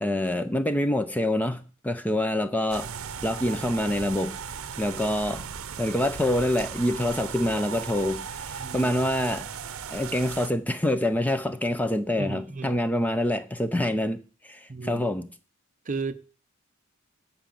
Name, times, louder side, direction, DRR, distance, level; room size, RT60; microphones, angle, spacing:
voice 1, 0.0-2.9 3.2-4.4 4.8-5.4 5.8-9.5 9.9-15.3, left 1 dB, 5° left, 0.6 m, -26 dB
sound 1, 2.7-10.5, right 7 dB, 75° right, 0.7 m, -37 dB
voice 2, 8.6-8.9 12.2-12.8 14.7-15.0 15.9-16.2, right 3 dB, 35° right, 0.6 m, -34 dB
9.0 x 5.8 x 7.5 m
head